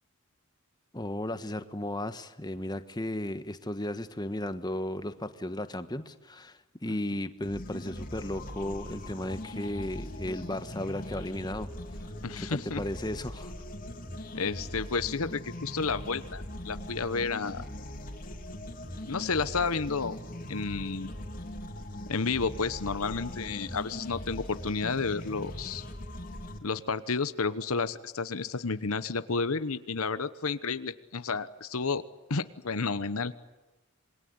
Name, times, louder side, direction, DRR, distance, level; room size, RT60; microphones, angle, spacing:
voice 1, 0.9-12.0 12.4-13.5, left 1 dB, 20° left, 11 dB, 1.3 m, -35 dB
sound 1, 7.4-26.6, left 1 dB, 40° left, 3.7 m, -41 dB
voice 2, 12.2-12.8 14.3-17.6 19.1-20.2 20.5-21.1 22.1-25.8 26.6-32.0 32.3-33.3, left 4 dB, 75° left, 13 dB, 1.1 m, -31 dB
27.5 x 22.0 x 9.6 m, 1.1 s
head